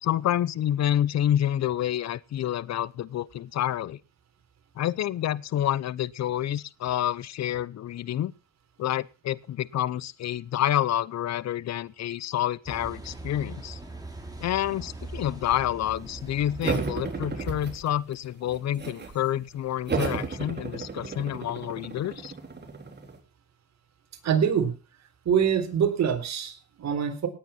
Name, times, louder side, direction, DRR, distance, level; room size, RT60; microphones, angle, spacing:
voice 1, 0.0-4.0 4.8-8.3 8.8-13.8 14.4-22.3, left 11 dB, 60° left, 0.8 m, -28 dB
Car passing by / Idling / Accelerating revving vroom, 12.7-17.8, right 2 dB, 10° right, 5.3 m, -41 dB
sound 1, 16.6-18.1 18.5-19.2 19.9-23.2, right 4 dB, 35° right, 3.8 m, -33 dB
voice 2, 24.2-24.7 25.3-27.3, right 8 dB, 60° right, 3.8 m, -24 dB
18.0 x 9.2 x 5.8 m
cardioid pair, 90°, 30 cm